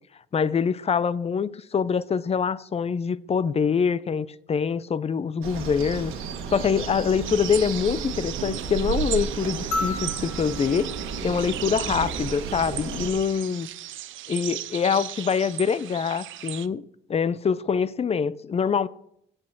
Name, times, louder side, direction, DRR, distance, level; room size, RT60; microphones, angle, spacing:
voice 1, 0.3-6.1 6.5-10.9 11.2-13.7 14.3-18.9, left 6 dB, 30° left, 0.5 m, -25 dB
sound 1, 5.4-13.1, right 6 dB, 90° right, 1.4 m, -33 dB
sound 2, 7.2-16.7, right 13 dB, 70° right, 0.5 m, -36 dB
sound 3, 9.7-12.3 13.9-14.0, left 2 dB, 80° left, 1.9 m, -34 dB
8.5 x 5.2 x 7.1 m
cardioid pair, 90°, 21 cm